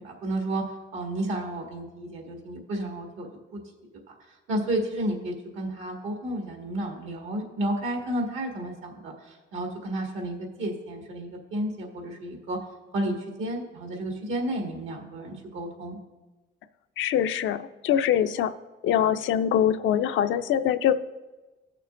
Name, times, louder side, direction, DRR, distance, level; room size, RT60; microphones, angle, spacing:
voice 1, 0.0-3.6 4.1-12.6 12.9-16.0, right 1 dB, 85° right, 1 dB, 1.9 m, -32 dB
voice 2, 17.0-18.5 18.8-20.9, left 10 dB, 75° left, 10 dB, 0.5 m, -23 dB
17.5 x 6.6 x 2.6 m, 1.2 s
cardioid pair, 90°, 20 cm